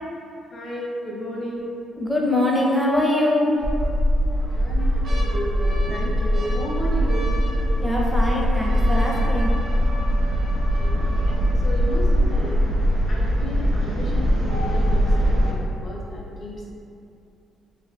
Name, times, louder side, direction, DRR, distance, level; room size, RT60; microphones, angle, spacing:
voice 1, 0.5-1.7 4.5-7.4 10.7-11.1 11.6-12.7 13.1-16.6, equal, 50° left, -4 dB, 0.6 m, -33 dB
sound 1, 1.6-2.1 2.5-2.6 3.5-4.1 4.5-12.5 13.2-13.3 13.5-13.9 14.4-14.5, equal, 60° right, 0.8 m, -40 dB
voice 2, 2.0-3.7 7.8-9.9, left 1 dB, ahead, -4 dB, 0.5 m, -23 dB
sound 2, 3.6-15.5, equal, 90° right, 0.5 m, -21 dB
2.6 x 2.5 x 2.3 m, 2.6 s
cardioid pair, 90°, 0 cm